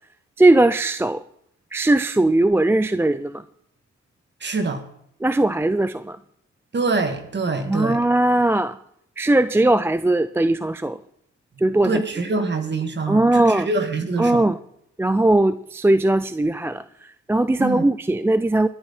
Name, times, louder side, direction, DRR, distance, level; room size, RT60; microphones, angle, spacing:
voice 1, 0.4-1.2 1.7-3.4 5.2-6.2 7.7-8.8 9.2-11.0 11.6-12.0 13.1-13.7 14.2-14.6 15.0-16.8 17.3-18.7, right 2 dB, 10° right, 13 dB, 0.4 m, -19 dB
voice 2, 4.4-4.8 6.7-8.0 11.8-14.4 17.6-17.8, right 3 dB, 35° right, 7 dB, 2.3 m, -25 dB
20.5 x 9.3 x 4.4 m, 0.71 s
cardioid pair, 90°, 30 cm